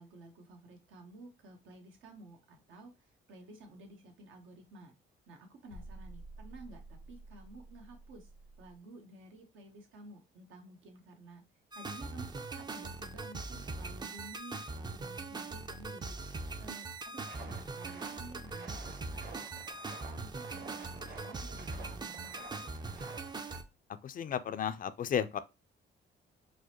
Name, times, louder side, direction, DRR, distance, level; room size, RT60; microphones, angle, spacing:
voice 1, 0.0-4.9 5.3-8.3 8.6-11.4 11.7-16.3 16.6-19.5 19.8-23.1, right 2 dB, 80° right, 1.0 m, -53 dB
sound 1, 5.7-8.8, right 2 dB, 90° left, 1.0 m, -50 dB
sound 2, 11.7-23.6, right 3 dB, 20° right, 0.4 m, -41 dB
sound 3, 17.2-23.6, right 4 dB, 55° right, 1.2 m, -51 dB
voice 2, 24.0-25.4, left 8 dB, 45° left, 0.4 m, -33 dB
4.6 x 2.1 x 2.9 m
cardioid pair, 90°, 20 cm